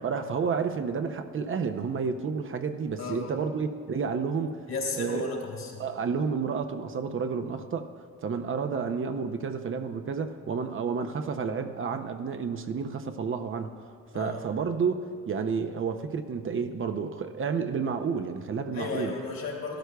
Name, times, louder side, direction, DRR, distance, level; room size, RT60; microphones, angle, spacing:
voice 1, 0.0-4.7 4.9-5.3 5.8-7.9 8.2-19.1, right 5 dB, 45° right, 6 dB, 0.6 m, -30 dB
voice 2, 3.0-3.3 4.7-5.9 14.1-14.4 18.7-19.8, left 3 dB, 60° left, -2 dB, 2.9 m, -34 dB
15.0 x 13.0 x 2.3 m, 2.1 s
cardioid pair, 90°, 30 cm